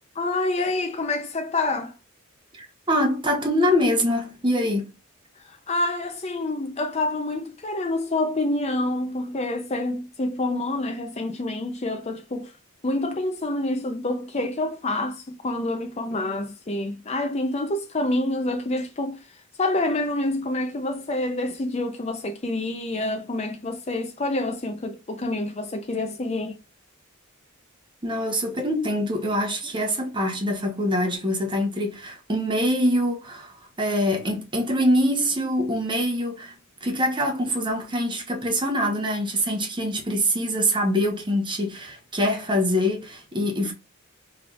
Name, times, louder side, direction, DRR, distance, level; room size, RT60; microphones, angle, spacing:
voice 1, 0.2-1.9 5.7-12.5 12.8-19.2 19.6-26.6, left 2 dB, 30° left, 0.6 m, -27 dB
voice 2, 2.5-4.9 28.0-36.6 36.8-43.7, equal, 20° right, 1.0 m, -24 dB
5.3 x 3.3 x 2.4 m
head